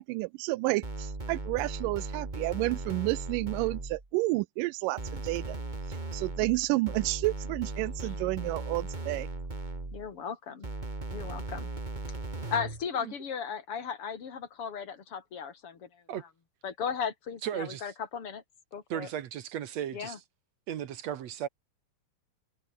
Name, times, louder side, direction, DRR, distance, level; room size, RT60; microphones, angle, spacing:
voice 1, 0.0-5.6 5.9-9.3, right 21 dB, 85° right, 2.1 m, -30 dB
sound 1, 0.8-4.1 5.0-10.1 10.6-12.8, right 2 dB, 15° right, 2.2 m, -37 dB
voice 2, 9.9-10.7 11.1-11.7 12.5-16.0 16.6-18.4 18.7-19.1 19.9-20.2, left 6 dB, 45° left, 3.9 m, -36 dB
voice 3, 17.4-17.9 18.9-20.2 20.7-21.5, right 10 dB, 60° right, 2.2 m, -36 dB
omnidirectional pair, 3.8 m